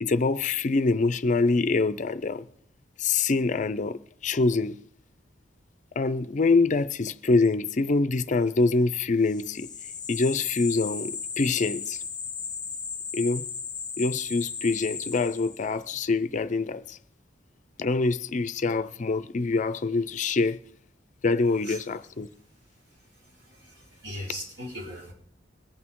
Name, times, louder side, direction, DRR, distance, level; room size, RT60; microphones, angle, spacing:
voice 1, 0.0-2.4 3.0-4.8 6.0-9.7 10.1-12.0 13.1-13.5 14.0-17.0 17.8-20.6 21.2-22.3, left 3 dB, 40° left, 0.4 m, -25 dB
sound 1, 9.3-15.8, left 6 dB, 25° left, 0.8 m, -36 dB
voice 2, 23.4-25.1, equal, 70° right, 5.0 m, -39 dB
22.5 x 8.6 x 3.6 m
head